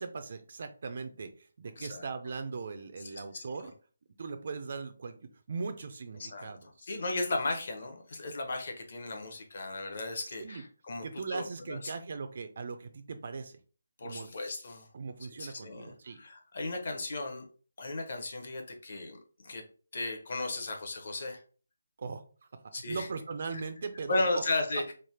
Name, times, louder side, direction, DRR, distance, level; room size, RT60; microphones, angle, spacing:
voice 1, 0.0-3.7 4.2-6.6 10.4-10.6 11.0-13.6 14.0-14.3 14.9-16.2 22.0-22.2 22.5-24.4, right 4 dB, 30° right, 9 dB, 0.3 m, -39 dB
voice 2, 1.8-2.1 3.1-3.7 6.2-6.5 6.8-11.0 11.3-11.9 14.0-14.9 15.4-17.5 17.8-19.6 19.9-21.4 22.7-23.1 24.1-24.9, left 2 dB, 35° left, 3 dB, 0.6 m, -35 dB
3.2 x 2.1 x 4.1 m, 0.39 s
hypercardioid pair, 180°, 0 cm